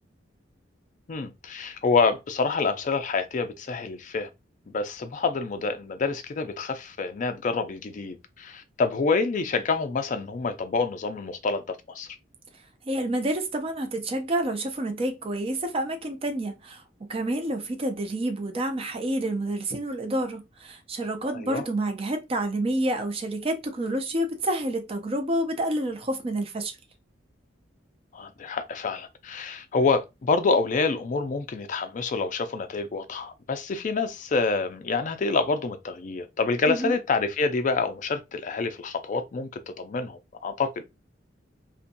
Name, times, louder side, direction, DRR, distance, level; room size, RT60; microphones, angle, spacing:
voice 1, 1.1-4.3 4.7-12.1 21.3-21.6 28.1-39.5 39.8-40.8, left 4 dB, 45° left, 0.4 m, -27 dB
voice 2, 12.8-16.8 17.1-26.8 36.7-36.9, right 1 dB, 30° right, 0.5 m, -28 dB
2.6 x 2.2 x 2.5 m
head